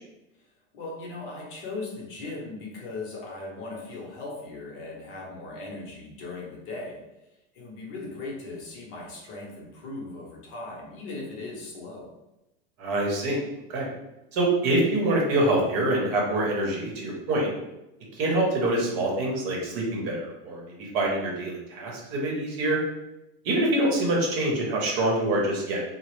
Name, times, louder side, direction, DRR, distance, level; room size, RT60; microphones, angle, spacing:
voice 1, 0.7-7.0 7.5-12.1, left 3 dB, 45° left, -2 dB, 0.7 m, -38 dB
voice 2, 12.8-13.4 13.7-13.9 14.3-17.5 18.1-22.8 23.4-25.8, right 1 dB, 50° right, -2 dB, 0.9 m, -25 dB
2.0 x 2.0 x 3.1 m, 0.92 s
supercardioid pair, 120°, 30 cm